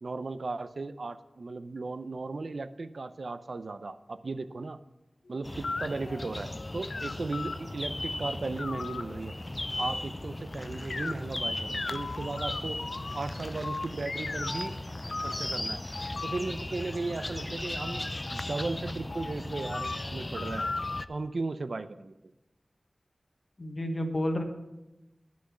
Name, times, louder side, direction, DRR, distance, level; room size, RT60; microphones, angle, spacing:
voice 1, 0.0-4.8 5.3-9.4 9.8-12.8 13.1-14.7 15.2-15.8 16.2-20.7 21.1-22.1, right 3 dB, 70° right, 12 dB, 0.5 m, -36 dB
sound 1, 5.3-7.5 8.4-9.2 9.8-10.5 10.9-11.1 11.7-13.2 13.6-14.7 15.1-15.5 15.9-16.4 17.8-21.0, left 3 dB, 80° left, 0.5 m, -38 dB
sound 2, 5.4-21.1, left 1 dB, 30° left, 0.4 m, -37 dB
voice 2, 23.6-24.4, left 1 dB, 50° left, 5 dB, 1.3 m, -30 dB
11.5 x 6.3 x 7.0 m, 0.98 s
wide cardioid pair, 60°, 0 cm